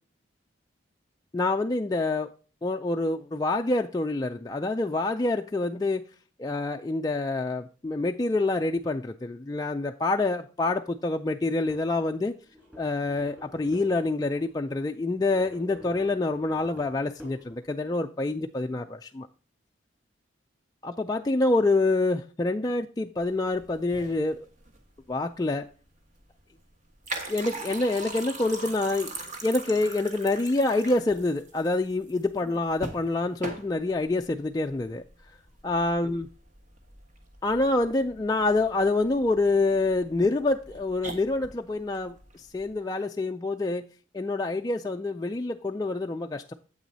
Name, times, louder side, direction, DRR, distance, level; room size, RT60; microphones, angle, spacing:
voice 1, 1.3-2.3 2.6-6.0 6.4-12.3 12.8-19.3 20.8-24.5 25.1-25.7 27.3-29.1 29.4-35.0 35.6-36.3 37.4-43.8 44.1-46.5, left 2 dB, 20° left, 0.3 m, -27 dB
sound 1, 11.7-12.0 12.5-14.4 15.1-17.8, left 1 dB, 10° right, 3.7 m, -48 dB
sound 2, 23.2-42.7, right 2 dB, 40° right, 1.4 m, -42 dB
9.0 x 8.0 x 2.7 m
head